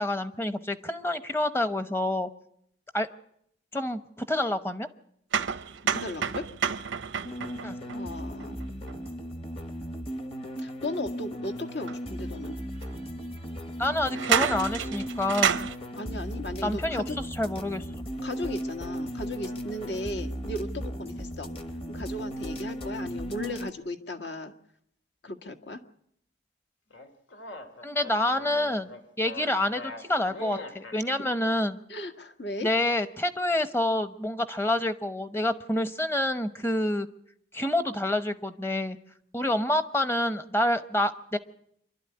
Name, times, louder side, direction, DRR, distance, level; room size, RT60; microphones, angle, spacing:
voice 1, 0.0-2.3 2.9-3.1 3.7-4.9 7.6-7.7 13.8-15.7 16.6-17.0 17.4-17.8 27.8-28.9 29.2-31.8 32.6-37.1 37.5-39.0 39.3-41.4, left 1 dB, 15° left, 10 dB, 0.9 m, -27 dB
sound 1, 5.3-9.1 11.9-12.0 12.8-12.9 14.1-15.8, right 7 dB, 85° right, 0.7 m, -29 dB
voice 2, 5.9-6.5 7.9-8.6 10.6-12.5 16.0-17.2 18.2-21.5 21.9-24.5 25.2-25.8 31.2-31.3 31.9-32.7, left 1 dB, 65° left, 7 dB, 1.7 m, -36 dB
sound 2, 7.2-23.7, equal, 30° left, 1.2 m, -36 dB
sound 3, 26.9-31.0, left 2 dB, 85° left, 2.6 m, -42 dB
26.5 x 12.0 x 9.7 m, 0.73 s
head